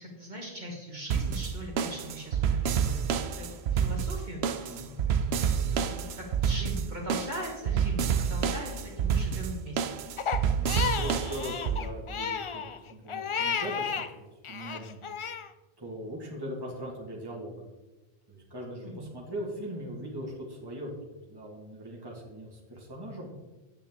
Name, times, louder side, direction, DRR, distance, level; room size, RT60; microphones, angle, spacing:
voice 1, 0.0-3.1 3.3-5.8 6.1-9.8 18.8-19.2, equal, 45° right, -2 dB, 1.8 m, -40 dB
sound 1, 1.1-11.8, right 7 dB, 80° right, 0.9 m, -28 dB
voice 2, 4.7-5.0 10.6-15.0 15.8-17.7 18.3-23.3, equal, 20° right, -3 dB, 1.7 m, -40 dB
Crying sobbing, 10.2-14.1 14.4-15.5, left 6 dB, 55° left, 0.3 m, -33 dB
9.0 x 8.7 x 3.6 m, 1.1 s
omnidirectional pair, 1.1 m